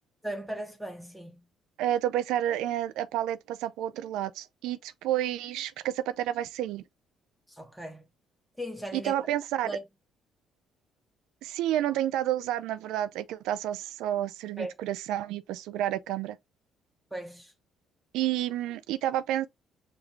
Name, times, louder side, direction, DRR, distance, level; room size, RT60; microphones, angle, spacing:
voice 1, 0.2-1.4 7.5-8.1 8.6-9.1 9.6-9.8 14.6-14.8 17.1-17.5, right 1 dB, 5° right, 1.1 m, -37 dB
voice 2, 1.8-6.8 8.9-9.7 11.4-16.4 18.1-19.5, right 12 dB, 75° right, 0.4 m, -30 dB
5.1 x 2.2 x 3.1 m
hypercardioid pair, 55°, 0 cm